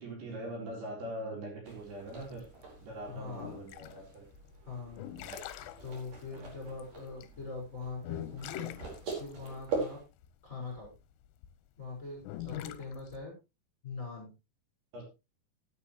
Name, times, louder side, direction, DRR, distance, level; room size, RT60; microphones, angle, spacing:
voice 1, 0.0-2.4 2.8-4.3 5.0-5.4 14.9-15.0, right 1 dB, 60° right, 0 dB, 6.1 m, -42 dB
sound 1, 1.6-10.0, right 3 dB, 45° right, 6.2 m, -43 dB
sound 2, 2.1-11.5 12.2-13.2, left 13 dB, 80° left, 2.9 m, -44 dB
voice 2, 3.0-3.6 4.7-5.1 5.8-8.7 9.2-10.0 10.4-10.9 11.8-13.3 13.8-14.3, left 4 dB, 15° left, 0 dB, 6.1 m, -42 dB
17.0 x 9.7 x 3.2 m, 0.27 s
omnidirectional pair, 5.1 m